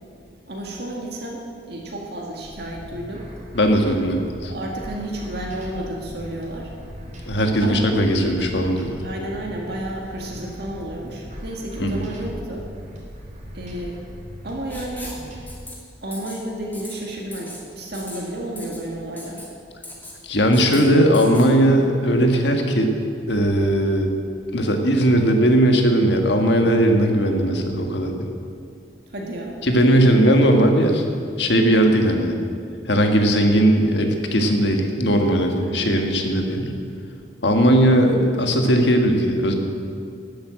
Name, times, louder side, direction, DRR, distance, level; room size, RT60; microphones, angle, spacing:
voice 1, 0.5-3.3 4.5-6.7 7.6-7.9 9.0-12.7 13.5-14.0 14.4-15.1 16.0-19.5 29.1-29.6 35.6-36.0, right 1 dB, 60° right, -1 dB, 1.8 m, -31 dB
sound 1, 2.4-15.5, equal, 40° right, 2.8 m, -39 dB
voice 2, 3.5-4.5 7.3-9.0 11.8-12.0 20.2-23.0 23.3-24.1 24.5-28.3 29.6-31.0 31.4-32.3 32.8-36.7 37.4-39.5, right 1 dB, 65° left, 3 dB, 1.7 m, -18 dB
Writing, 14.7-15.2 15.5-15.7 16.1-16.4 16.7-17.0 17.3-17.6 17.9-18.2 18.6-18.8 19.2-19.5 19.8-20.2 20.5-20.8 21.1-21.5, left 1 dB, 10° left, 2.5 m, -38 dB
13.0 x 8.8 x 8.8 m, 2.4 s
head